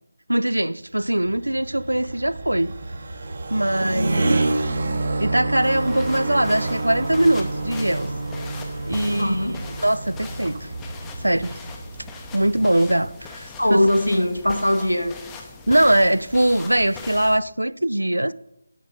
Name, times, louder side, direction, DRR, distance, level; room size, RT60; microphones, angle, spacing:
voice 1, 0.3-2.8 3.5-4.4 5.2-8.1 8.9-10.7 11.2-11.6 12.3-13.9 15.7-18.3, right 1 dB, 75° right, 0.3 m, -21 dB
sound 1, 0.9-12.5, right 2 dB, 45° right, 0.9 m, -29 dB
voice 2, 3.8-4.4 9.1-9.6 13.6-15.2, left 1 dB, 85° left, 1.2 m, -21 dB
sound 2, 5.6-17.4, left 4 dB, 10° left, 0.6 m, -40 dB
9.2 x 5.8 x 4.0 m
figure-of-eight pair, 155°, 0 cm